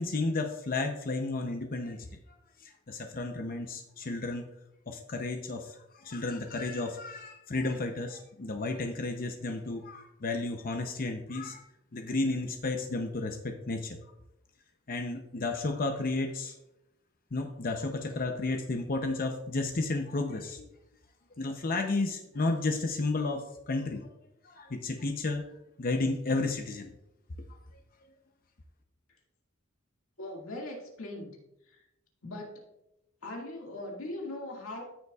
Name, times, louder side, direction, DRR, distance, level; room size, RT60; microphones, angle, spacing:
voice 1, 0.0-2.1 2.6-4.5 4.9-11.6 11.9-14.0 14.9-16.5 17.3-20.7 21.4-24.1 24.4-25.5 25.8-26.9, left 3 dB, 45° left, 5 dB, 0.7 m, -32 dB
voice 2, 30.2-31.4 31.7-31.8 32.2-32.7 33.2-34.8, left 1 dB, 75° left, -1 dB, 2.1 m, -40 dB
13.5 x 6.7 x 2.4 m, 0.86 s
head